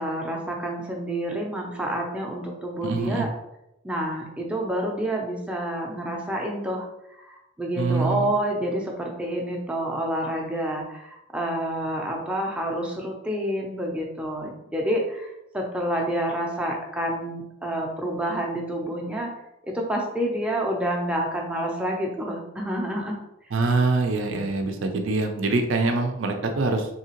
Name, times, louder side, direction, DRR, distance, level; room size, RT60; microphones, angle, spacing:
voice 1, 0.0-3.3 3.8-19.3 19.6-23.2, right 1 dB, 5° right, -1 dB, 0.4 m, -28 dB
voice 2, 2.8-3.3 7.8-8.3 23.5-26.9, right 3 dB, 70° right, 5 dB, 0.5 m, -24 dB
3.7 x 2.8 x 2.9 m, 0.86 s
head